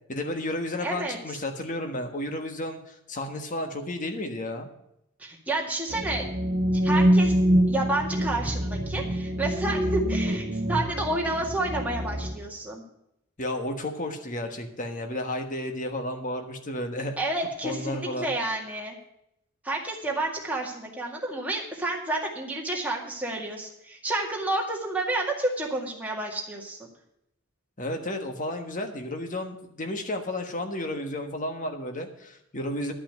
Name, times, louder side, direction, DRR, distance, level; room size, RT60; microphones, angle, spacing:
voice 1, 0.1-4.7 13.4-17.1 17.6-18.3 27.8-32.9, left 1 dB, 35° left, 5 dB, 1.4 m, -32 dB
voice 2, 0.8-1.4 5.2-6.3 6.8-7.3 7.7-12.8 17.2-19.0 19.6-26.8, right 2 dB, 5° right, -2 dB, 2.0 m, -30 dB
sound 1, 5.9-12.3, equal, 50° right, 1.3 m, -25 dB
11.5 x 5.7 x 9.0 m, 0.79 s
head